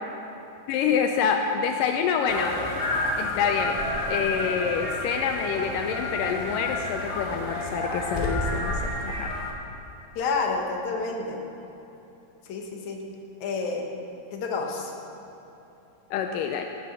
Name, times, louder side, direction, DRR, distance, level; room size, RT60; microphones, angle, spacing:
voice 1, 0.7-2.6 3.2-3.8 4.0-9.4 16.1-16.7, left 7 dB, 85° left, 4 dB, 2.3 m, -27 dB
sound 1, 2.3-9.5, left 2 dB, 30° left, 1.1 m, -30 dB
voice 2, 10.2-11.4 12.4-13.0 13.4-13.9 14.3-14.9, left 4 dB, 65° left, 1 dB, 2.7 m, -29 dB
17.5 x 8.9 x 6.3 m, 3.0 s
omnidirectional pair, 3.8 m